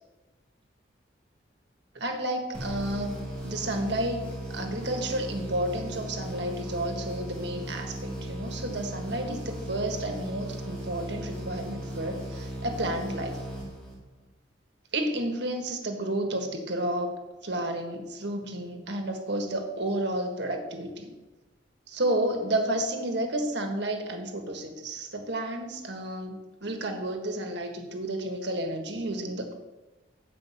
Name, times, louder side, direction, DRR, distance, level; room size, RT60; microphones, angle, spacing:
voice 1, 1.9-13.4 14.9-17.1 17.4-21.2 21.9-29.5, right 1 dB, 70° right, 4 dB, 1.5 m, -31 dB
sound 1, 2.5-14.3, right 1 dB, 5° left, 2.7 m, -37 dB
8.3 x 5.2 x 7.5 m, 1.1 s
head